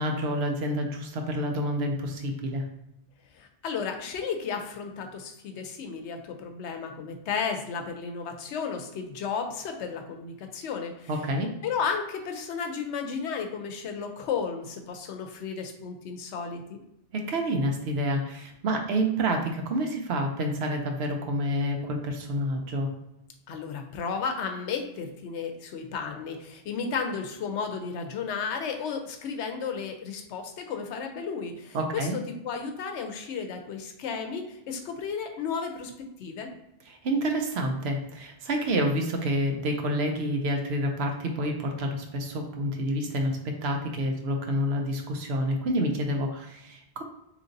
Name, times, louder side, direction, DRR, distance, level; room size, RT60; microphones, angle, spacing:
voice 1, 0.0-2.6 11.1-11.5 17.1-22.9 31.7-32.1 37.0-47.0, equal, 70° right, 3 dB, 0.9 m, -28 dB
voice 2, 3.3-11.1 11.6-16.8 23.5-36.5, left 6 dB, 85° left, 5 dB, 0.9 m, -33 dB
3.8 x 3.2 x 2.5 m, 0.84 s
omnidirectional pair, 1.1 m